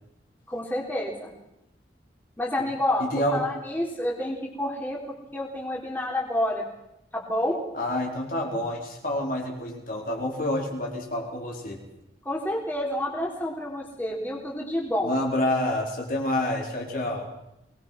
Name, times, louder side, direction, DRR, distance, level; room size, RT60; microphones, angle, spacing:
voice 1, 0.5-1.3 2.4-3.1 3.3-5.0 5.3-6.7 7.1-7.6 12.2-15.1, left 1 dB, 10° left, -3 dB, 3.8 m, -29 dB
voice 2, 3.0-3.5 7.7-11.8 15.0-17.3, left 1 dB, 55° left, 0 dB, 4.4 m, -28 dB
23.0 x 20.5 x 6.0 m, 0.87 s
head